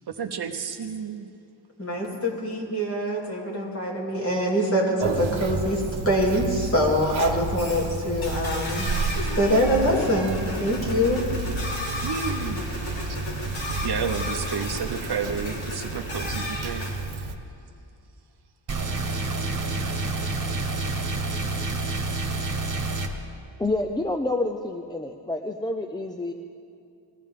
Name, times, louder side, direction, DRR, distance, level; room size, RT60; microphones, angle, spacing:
voice 1, 0.2-1.3 12.0-12.7 13.8-16.8, right 6 dB, 55° right, 6 dB, 0.8 m, -31 dB
voice 2, 1.8-8.9 9.2-11.2, equal, 30° left, -4 dB, 3.0 m, -24 dB
Conversation, 5.0-17.4, right 3 dB, 80° right, 1.2 m, -31 dB
sound 1, 7.6-7.9 8.2-16.9, left 2 dB, 90° left, 4.1 m, -34 dB
sound 2, 18.7-23.1, right 3 dB, 40° right, 1.5 m, -28 dB
voice 3, 23.6-26.3, left 2 dB, 10° left, 4 dB, 0.4 m, -28 dB
21.5 x 15.0 x 3.7 m, 2.6 s
wide cardioid pair, 155°, 47 cm